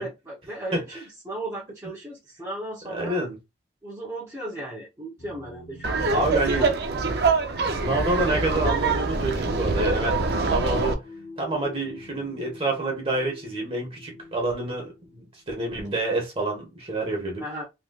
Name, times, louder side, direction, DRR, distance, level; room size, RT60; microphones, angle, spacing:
voice 1, 0.0-3.2 3.8-6.7 17.4-17.6, right 1 dB, 15° right, 0.9 m, -36 dB
voice 2, 2.9-3.4 6.1-6.7 7.7-11.0 11.4-17.4, right 2 dB, 30° right, 1.4 m, -28 dB
sound 1, 5.2-15.9, left 2 dB, 80° left, 1.1 m, -46 dB
Laughter, 5.8-10.9, right 4 dB, 60° right, 0.6 m, -24 dB
3.2 x 3.2 x 2.4 m
head